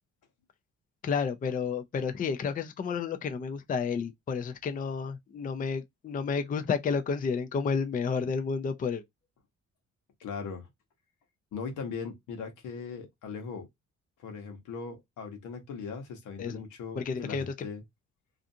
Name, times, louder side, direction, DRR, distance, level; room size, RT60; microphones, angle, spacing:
voice 1, 1.0-9.0 16.4-16.6 17.0-17.5, left 5 dB, 30° left, 0.4 m, -31 dB
voice 2, 10.2-10.7 11.5-13.7 14.2-17.8, left 5 dB, 85° left, 1.0 m, -39 dB
2.5 x 2.4 x 2.6 m
cardioid pair, 90°, 30 cm